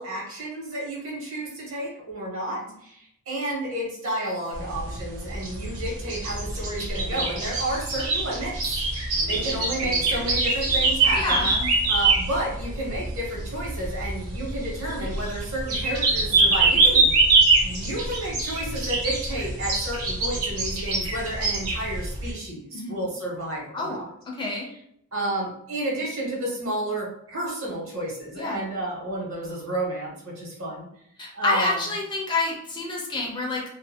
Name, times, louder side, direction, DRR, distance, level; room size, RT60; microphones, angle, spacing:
voice 1, 0.0-8.8 9.3-11.5 11.9-17.2 17.6-24.1 25.1-30.9 31.3-31.8, right 1 dB, 60° right, -3 dB, 1.0 m, -31 dB
sound 1, 4.5-22.3, right 3 dB, 90° right, 0.7 m, -24 dB
voice 2, 11.2-11.7 22.7-22.9 23.7-24.7 28.4-28.6 31.2-33.6, left 2 dB, 20° left, -1 dB, 0.4 m, -28 dB
2.4 x 2.4 x 2.7 m, 0.70 s
head